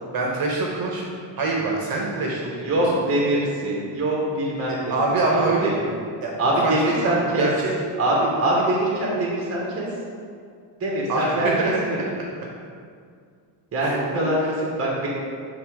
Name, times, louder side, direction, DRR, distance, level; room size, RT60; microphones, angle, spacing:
voice 1, 0.1-1.0 1.4-2.5 2.9-3.0 4.7-5.7 6.2-6.3 6.6-7.7 11.1-11.8 13.8-14.3, right 3 dB, 50° right, -2 dB, 1.1 m, -24 dB
voice 2, 2.6-4.9 5.3-5.7 6.4-7.5 8.0-9.9 10.8-12.1 13.7-15.1, right 1 dB, 30° right, -4 dB, 1.3 m, -23 dB
8.5 x 3.5 x 4.9 m, 2.2 s
cardioid pair, 140°, 47 cm